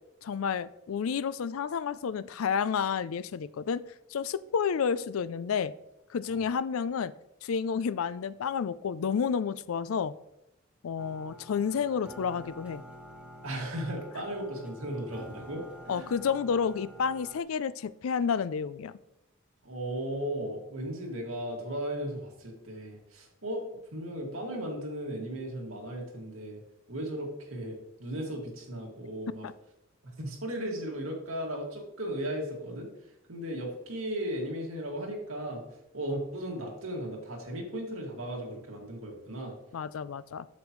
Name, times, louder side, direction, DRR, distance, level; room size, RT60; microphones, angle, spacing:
voice 1, 0.2-3.8 4.1-5.7 6.1-7.1 7.4-10.1 10.8-12.8 15.9-18.9 29.4-29.5 39.7-40.5, left 6 dB, 75° left, 17 dB, 0.4 m, -30 dB
sound 1, 11.0-17.4, equal, 5° right, 0.9 m, -49 dB
voice 2, 13.4-16.1 19.6-26.6 26.9-29.5 30.0-39.6, right 1 dB, 75° right, 0 dB, 2.1 m, -36 dB
8.3 x 7.2 x 3.1 m, 0.88 s
head